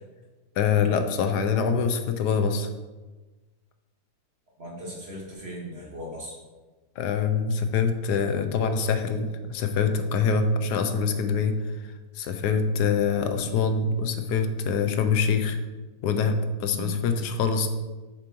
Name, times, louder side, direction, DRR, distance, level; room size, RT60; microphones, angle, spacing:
voice 1, 0.6-2.7 7.0-11.6 12.1-15.6 16.0-17.7, left 5 dB, 90° left, 7 dB, 1.3 m, -24 dB
voice 2, 4.6-6.4 16.7-17.0, right 1 dB, 40° right, -3 dB, 1.9 m, -38 dB
7.9 x 6.9 x 3.1 m, 1.2 s
omnidirectional pair, 1.7 m